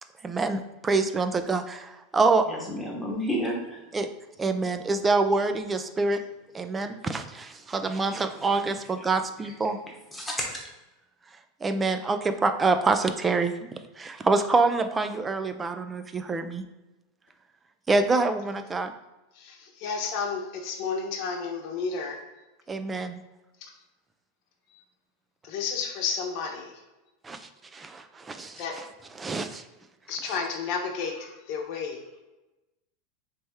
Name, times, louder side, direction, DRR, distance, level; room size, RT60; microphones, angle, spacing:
voice 1, 0.2-2.5 3.9-4.1 4.4-6.2 6.5-9.8 11.6-13.7 14.0-16.6 17.9-18.9 22.7-23.2 27.2-28.6 29.2-29.6, right 3 dB, 15° right, 8 dB, 0.3 m, -26 dB
voice 2, 2.5-3.8 9.0-9.1 9.4-9.5 10.1-10.6, equal, 5° left, -3 dB, 1.2 m, -31 dB
voice 3, 19.3-22.2 23.6-23.7 24.7-24.8 25.4-26.7 28.6-28.7 30.1-32.0, left 5 dB, 50° left, 1 dB, 0.8 m, -32 dB
3.4 x 3.2 x 4.3 m, 1.0 s
supercardioid pair, 135°, 0 cm